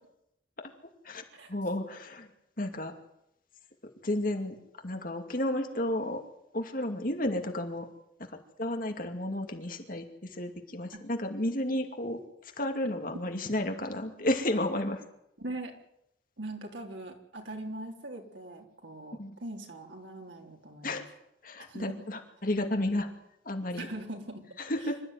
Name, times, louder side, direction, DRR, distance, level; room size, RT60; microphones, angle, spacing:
voice 1, 1.5-2.3 2.6-2.9 4.0-4.6 4.8-6.2 6.5-7.9 8.3-12.2 12.6-15.0 19.2-19.3 20.8-21.0 21.4-23.1 23.5-23.9 24.6-25.0, left 1 dB, 50° left, 5 dB, 2.5 m, -32 dB
voice 2, 15.4-15.7 16.4-21.0 21.7-22.0 23.7-24.4 24.8-24.9, right 2 dB, 90° right, 2 dB, 3.8 m, -41 dB
26.0 x 13.5 x 9.6 m, 0.81 s
head